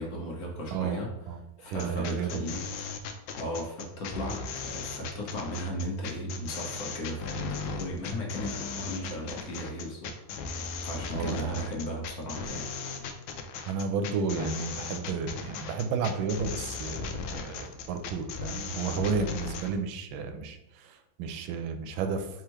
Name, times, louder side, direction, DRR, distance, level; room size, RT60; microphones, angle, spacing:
voice 1, 0.0-1.1 1.6-2.6 3.4-10.1 10.8-12.7 17.0-17.1, equal, 55° left, -1 dB, 1.2 m, -36 dB
sound 1, 1.7-19.7, left 5 dB, 75° left, 1.2 m, -37 dB
voice 2, 1.7-2.4 11.1-11.5 13.7-22.3, right 5 dB, 90° right, 7 dB, 1.4 m, -32 dB
4.8 x 3.5 x 3.0 m, 0.88 s
omnidirectional pair, 2.1 m